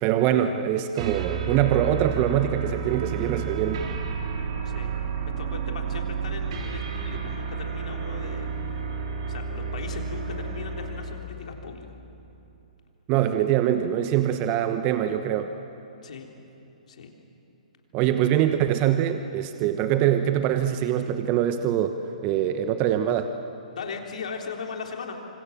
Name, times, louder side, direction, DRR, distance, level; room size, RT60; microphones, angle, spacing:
voice 1, 0.0-3.8 13.1-15.5 17.9-22.0 22.2-23.3, right 11 dB, 30° right, 8 dB, 1.1 m, -23 dB
sound 1, 1.0-11.3, right 6 dB, 50° right, 3.7 m, -31 dB
voice 2, 5.4-8.5 9.3-12.0 16.0-16.3 16.9-17.1 23.7-25.2, left 5 dB, 65° left, 2 dB, 3.8 m, -38 dB
26.0 x 26.0 x 7.5 m, 2.9 s
figure-of-eight pair, 125°, 4 cm